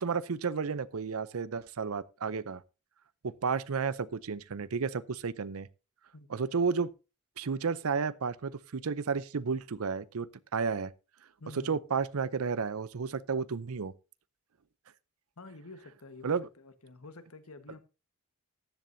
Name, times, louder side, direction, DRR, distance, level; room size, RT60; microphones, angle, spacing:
voice 1, 0.0-2.6 3.2-5.7 6.3-6.9 7.4-10.9 11.5-13.9 16.2-16.5, right 5 dB, 75° right, 0.6 m, -32 dB
voice 2, 11.4-11.8 15.4-17.8, left 2 dB, 75° left, 1.4 m, -49 dB
14.0 x 10.5 x 2.7 m
head